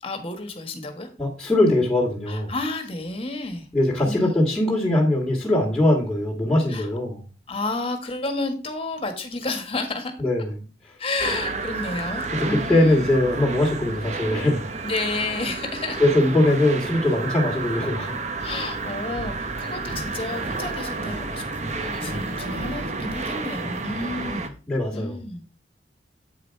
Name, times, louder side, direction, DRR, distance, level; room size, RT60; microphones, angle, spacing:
voice 1, 0.0-1.1 2.3-3.7 4.0-4.4 6.7-6.9 7.5-10.1 11.0-13.1 14.8-16.0 18.4-24.5 24.9-25.4, left 2 dB, 30° left, 6 dB, 1.5 m, -31 dB
voice 2, 1.2-2.5 3.7-7.2 10.2-10.5 12.3-14.6 16.0-18.2 24.7-25.1, left 1 dB, 5° left, -6 dB, 1.9 m, -21 dB
sound 1, 11.2-24.5, right 3 dB, 40° right, 0.9 m, -31 dB
8.4 x 5.1 x 4.6 m, 0.34 s
head